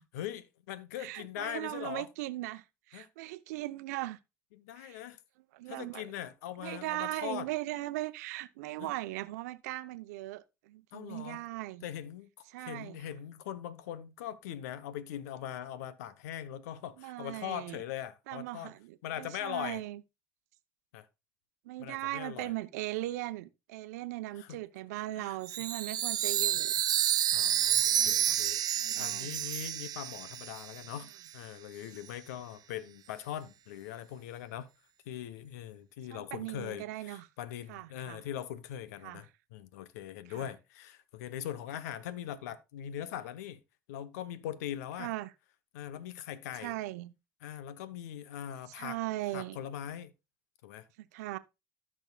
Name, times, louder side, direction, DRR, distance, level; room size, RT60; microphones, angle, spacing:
voice 1, 0.1-2.1 2.9-3.1 4.5-5.2 5.7-7.5 8.8-8.9 10.9-11.4 11.8-18.7 19.0-19.8 20.9-21.1 21.8-22.5 24.3-24.6 25.1-25.4 26.5-26.6 27.3-34.7 35.1-43.6 43.9-45.1 45.7-46.7 47.4-49.0 49.3-50.1 50.6-50.9, left 11 dB, 85° left, 0.9 m, -41 dB
voice 2, 1.0-4.2 4.8-5.0 5.5-6.0 6.6-11.8 12.5-13.0 17.0-17.8 18.3-20.0 21.6-26.8 27.9-28.4 28.8-29.3 36.1-37.3 37.7-38.2 39.0-39.2 40.3-40.5 45.0-45.3 46.6-47.1 48.7-49.6 51.1-51.4, right 17 dB, 85° right, 0.7 m, -39 dB
Chime, 25.5-31.0, right 11 dB, 50° right, 0.7 m, -30 dB
14.5 x 6.3 x 2.3 m
supercardioid pair, 80°, 9 cm